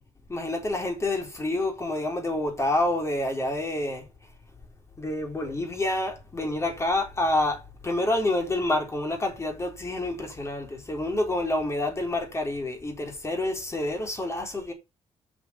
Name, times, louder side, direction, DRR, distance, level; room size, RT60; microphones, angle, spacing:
voice 1, 0.3-4.1 5.0-14.7, left 1 dB, 25° left, 4.0 m, -28 dB
7.4 x 6.8 x 5.9 m
cardioid pair, 110°, 12 cm